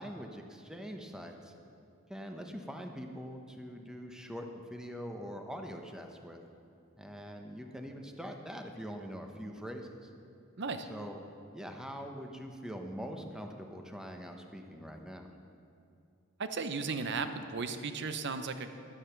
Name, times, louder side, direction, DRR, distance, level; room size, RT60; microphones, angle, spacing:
voice 1, 0.0-1.5 2.1-6.4 7.0-10.1 10.8-11.2 11.5-15.3, equal, 5° right, 3 dB, 0.9 m, -43 dB
voice 2, 16.4-18.7, right 4 dB, 55° right, 9 dB, 0.7 m, -35 dB
11.5 x 9.9 x 5.9 m, 2.6 s
head